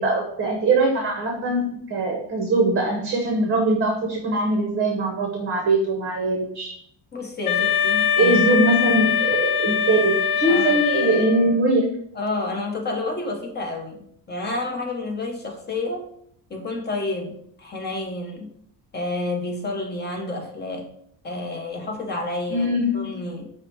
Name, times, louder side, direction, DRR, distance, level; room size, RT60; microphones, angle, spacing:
voice 1, 0.0-6.7 8.2-11.8 22.5-23.0, right 2 dB, 30° right, 0.8 m, -21 dB
voice 2, 7.1-8.5 9.9-10.0 10.5-10.8 12.1-16.1 16.5-18.5 18.9-20.9 21.2-22.7 22.9-23.5, left 2 dB, 25° left, 0.7 m, -30 dB
Wind instrument woodwind instrument, 7.4-11.6, left 7 dB, 75° left, 0.5 m, -22 dB
5.6 x 2.1 x 4.4 m
cardioid pair, 160°, 40 cm